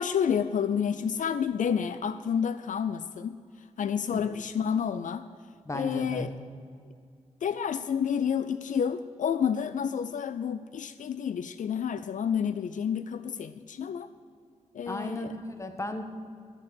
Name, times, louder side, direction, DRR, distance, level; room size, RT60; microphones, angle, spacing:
voice 1, 0.0-3.4 3.8-5.3 5.7-6.3 7.4-14.1 14.7-15.3, left 7 dB, 80° left, 13 dB, 0.4 m, -29 dB
voice 2, 5.7-6.3 14.9-16.0, left 1 dB, 25° left, 7 dB, 1.2 m, -35 dB
13.0 x 6.9 x 8.3 m, 2.2 s
wide cardioid pair, 90°, 13 cm